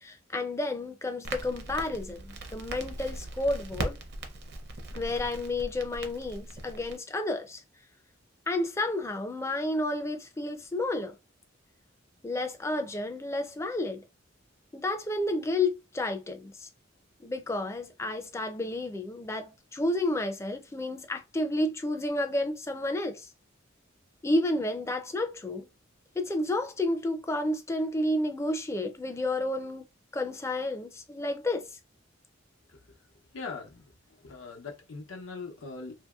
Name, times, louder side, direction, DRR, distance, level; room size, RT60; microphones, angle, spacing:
voice 1, 0.0-4.0 4.9-7.6 8.5-11.2 12.2-14.0 14.7-16.7 17.2-23.3 24.2-25.7 26.2-29.9 30.1-31.6, left 1 dB, 15° left, 0.4 m, -31 dB
Crackle, 1.2-7.0, right 2 dB, 60° right, 0.6 m, -39 dB
voice 2, 33.3-33.8 34.2-35.9, left 4 dB, 85° left, 0.7 m, -40 dB
2.8 x 2.7 x 2.3 m
head